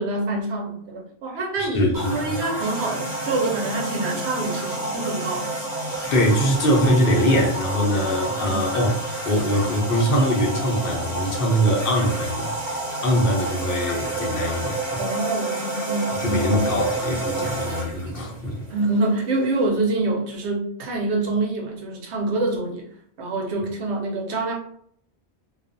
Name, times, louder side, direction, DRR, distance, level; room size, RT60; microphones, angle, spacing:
voice 1, 0.0-5.6 8.4-8.6 15.0-16.6 17.3-17.6 18.7-22.9 23.2-24.5, right 2 dB, 85° right, 1.0 m, -26 dB
voice 2, 1.3-2.2 5.9-9.0 9.2-15.0 16.2-18.6, equal, 60° left, 0.8 m, -22 dB
sound 1, 1.9-19.7, right 2 dB, 60° right, 1.1 m, -30 dB
2.4 x 2.3 x 2.5 m
omnidirectional pair, 1.1 m